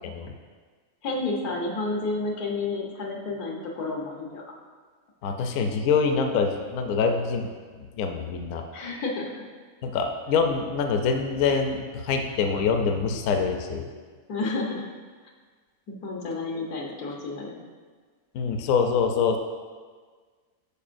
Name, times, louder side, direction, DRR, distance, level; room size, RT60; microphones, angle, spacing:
voice 1, 1.0-4.4 8.7-9.3 14.3-14.9 15.9-17.6, left 3 dB, 90° left, -1 dB, 1.5 m, -30 dB
voice 2, 5.2-7.5 8.0-8.6 9.8-13.9 18.3-19.4, left 5 dB, 70° left, 4 dB, 0.9 m, -25 dB
12.5 x 4.5 x 2.5 m, 1.5 s
omnidirectional pair, 1.5 m